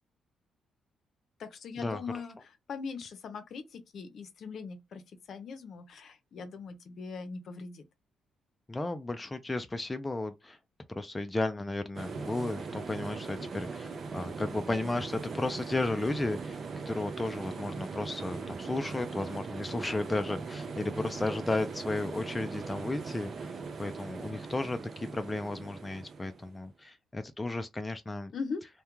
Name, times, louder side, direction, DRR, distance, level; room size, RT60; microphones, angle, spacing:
voice 1, 1.4-2.4 2.7-5.0 5.3-7.8 28.3-28.6, left 5 dB, 60° left, 0.6 m, -40 dB
voice 2, 8.7-10.6 10.9-16.6 16.9-23.5 23.8-28.3, left 2 dB, 15° left, 0.3 m, -34 dB
sound 1, 11.9-26.6, right 4 dB, 50° right, 0.5 m, -40 dB
2.3 x 2.2 x 3.0 m
cardioid pair, 90°, 0 cm